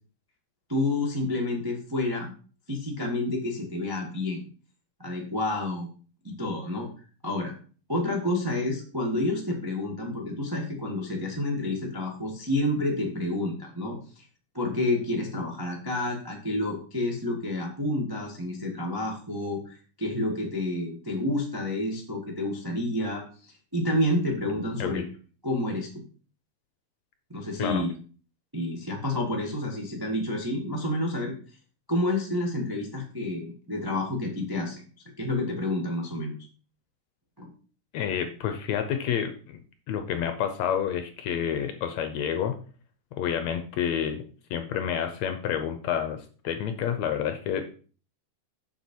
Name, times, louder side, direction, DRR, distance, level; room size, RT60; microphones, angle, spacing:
voice 1, 0.7-2.3 2.7-4.5 5.0-5.9 6.2-6.9 7.2-7.5 7.9-14.2 14.5-25.0 25.4-26.0 27.3-27.9 28.5-31.4 31.9-34.8 35.2-36.3 37.4-37.5, left 1 dB, 20° right, -1 dB, 0.6 m, -29 dB
voice 2, 37.9-39.6 39.9-42.6 43.2-44.2 44.5-46.2 46.4-47.7, left 8 dB, 75° left, 8 dB, 1.8 m, -29 dB
7.3 x 6.9 x 4.5 m, 0.40 s
omnidirectional pair, 3.7 m